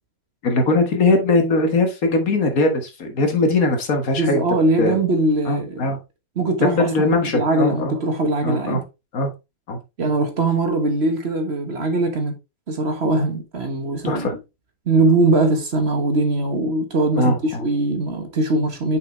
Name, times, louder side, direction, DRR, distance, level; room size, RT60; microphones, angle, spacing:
voice 1, 0.4-4.5 4.8-5.0 5.5-6.0 6.6-7.9 8.4-8.8 9.1-9.3 9.7-9.8 14.0-14.3 17.2-17.7, left 2 dB, 65° left, 1.8 m, -20 dB
voice 2, 4.1-5.9 6.4-8.8 10.0-12.3 12.7-14.3 14.9-19.0, right 2 dB, 45° right, 1.4 m, -21 dB
6.3 x 5.3 x 3.2 m
omnidirectional pair, 1.6 m